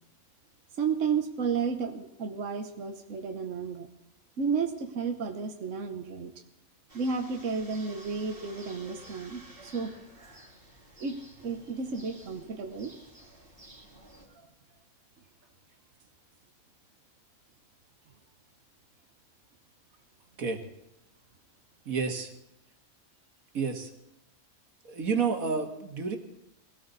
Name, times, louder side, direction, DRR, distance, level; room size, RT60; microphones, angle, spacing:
voice 1, 0.8-3.9 4.4-6.3 6.9-9.9 11.0-12.9, right 5 dB, 65° right, 5 dB, 1.5 m, -32 dB
sound 1, 6.9-14.3, right 1 dB, 40° right, 4.2 m, -52 dB
voice 2, 21.9-22.3 23.5-23.9 24.8-26.2, right 5 dB, 90° right, 5 dB, 2.1 m, -30 dB
20.5 x 17.5 x 4.1 m, 0.83 s
omnidirectional pair, 1.4 m